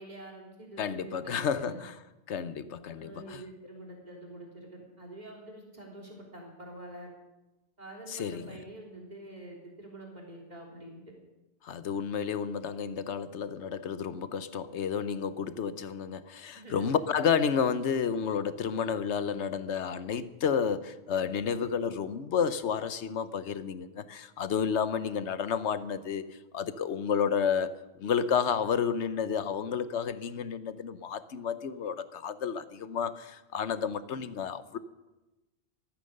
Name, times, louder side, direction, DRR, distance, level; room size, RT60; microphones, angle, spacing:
voice 1, 0.0-1.8 3.0-7.1 7.8-11.0 16.5-17.0, right 1 dB, 40° right, 3.6 m, -46 dB
voice 2, 0.8-1.9 2.3-3.4 8.1-8.5 11.6-26.2 26.5-34.8, left 7 dB, 90° left, 1.2 m, -31 dB
14.5 x 13.5 x 6.6 m
omnidirectional pair, 1.1 m